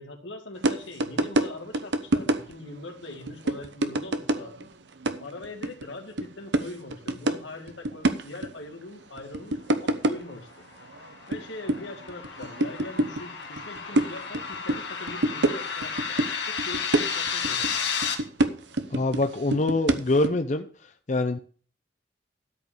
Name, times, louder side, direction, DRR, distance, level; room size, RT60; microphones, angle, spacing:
voice 1, 0.0-4.7 5.2-10.5 11.3-17.9, left 2 dB, 85° left, 5 dB, 2.2 m, -41 dB
sound 1, 0.6-0.7 1.0-1.5 1.7-2.8 3.1-4.7 5.0-5.9 6.2-6.3 6.5-7.3 7.7-8.5 9.2-10.3 10.8-11.4 11.7-13.3 13.6-14.8 15.1-16.3 16.6-17.7 18.0-19.2 19.5-20.3, right 2 dB, 70° right, 1.0 m, -25 dB
sound 2, 10.4-18.1, left 6 dB, 70° left, 2.2 m, -32 dB
voice 2, 18.9-20.7 21.1-21.4, left 2 dB, 40° left, 8 dB, 0.6 m, -24 dB
12.5 x 5.3 x 7.0 m, 0.42 s
head